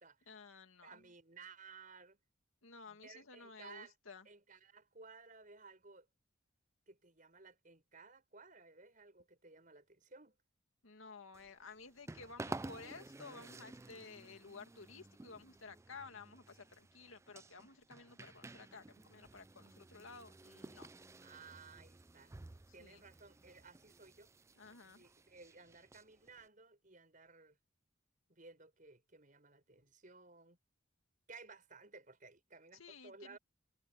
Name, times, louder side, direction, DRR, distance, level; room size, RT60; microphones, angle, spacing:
voice 1, 0.3-1.0 2.6-4.3 10.8-20.9 22.7-23.0 24.6-25.0 32.7-33.4, left 4 dB, 85° left, 2.3 m, -54 dB
voice 2, 0.8-2.2 2.9-3.9 4.3-6.1 6.9-10.4 21.2-22.3 22.7-24.3 24.8-27.6 28.3-30.6 31.3-33.4, right 4 dB, 40° right, 6.1 m, -57 dB
sound 1, 11.3-26.5, right 2 dB, 15° right, 0.3 m, -53 dB
head